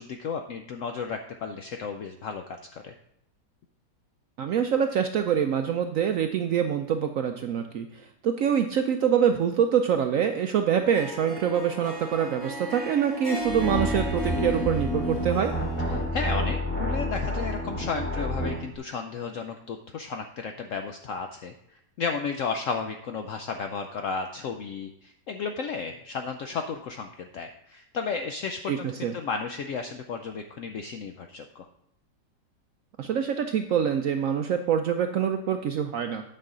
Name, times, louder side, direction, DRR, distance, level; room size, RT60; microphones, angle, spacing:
voice 1, 0.0-2.4 2.7-2.9 15.9-31.7, left 5 dB, 75° left, 5 dB, 0.7 m, -33 dB
voice 2, 4.4-15.5 28.7-29.1 33.0-36.3, right 8 dB, 75° right, 6 dB, 0.7 m, -25 dB
Harp, 10.8-16.1, right 1 dB, 35° left, 2.2 m, -36 dB
sound 1, 13.4-18.7, left 1 dB, 10° left, 1.1 m, -29 dB
9.0 x 6.1 x 3.7 m, 0.78 s
omnidirectional pair, 1.9 m